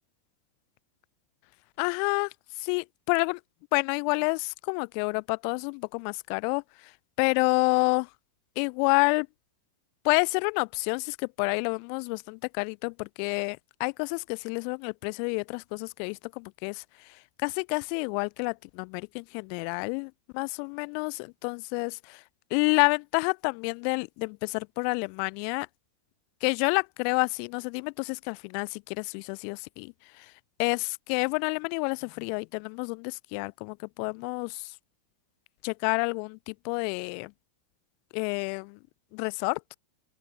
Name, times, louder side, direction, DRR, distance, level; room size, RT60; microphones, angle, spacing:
voice 1, 1.8-2.3 2.6-3.4 3.7-6.6 7.2-8.1 8.6-9.3 10.0-16.8 17.4-22.2 22.5-25.7 26.4-30.3 30.6-34.7 35.6-37.3 38.1-38.8 39.1-39.7, left 40 dB or more, 45° left, 0.5 m, -29 dB
open air
figure-of-eight pair, 90°, 0 cm